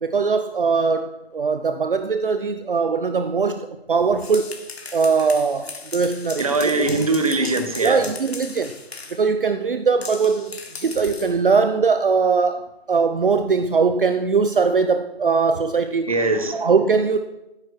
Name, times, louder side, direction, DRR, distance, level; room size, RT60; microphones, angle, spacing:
voice 1, 0.0-4.6 4.9-6.5 6.8-6.9 7.8-8.7 9.1-16.1 16.5-17.2, right 5 dB, 55° right, 0.8 m, -21 dB
sound 1, 4.0-9.2 10.0-11.4, left 4 dB, 75° left, 2.2 m, -37 dB
voice 2, 6.4-8.1 16.1-16.7, right 3 dB, 35° right, 1.2 m, -21 dB
13.0 x 9.9 x 6.4 m
hypercardioid pair, 180°, 32 cm